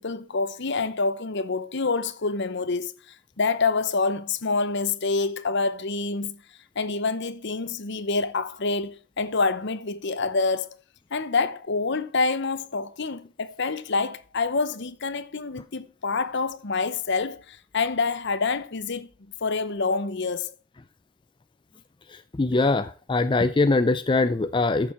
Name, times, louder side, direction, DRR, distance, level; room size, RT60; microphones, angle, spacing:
voice 1, 0.0-2.9 3.4-6.4 6.8-10.7 11.1-19.1 19.4-20.5, left 4 dB, 55° left, 0.8 m, -27 dB
voice 2, 22.1-24.9, left 3 dB, 20° left, 0.4 m, -22 dB
14.0 x 6.8 x 4.3 m
head